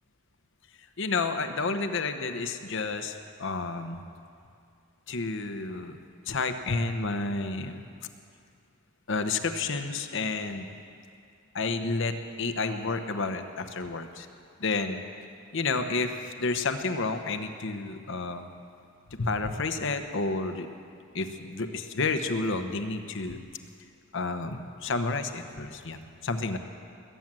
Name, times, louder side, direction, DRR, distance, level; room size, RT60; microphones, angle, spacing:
voice 1, 1.0-4.0 5.1-6.0 6.3-7.9 9.1-10.7 11.5-14.3 14.6-15.0 15.5-18.5 19.2-20.7 21.1-23.4 24.1-26.6, left 3 dB, 65° left, 8 dB, 1.0 m, -30 dB
21.0 x 9.2 x 7.6 m, 2.4 s
head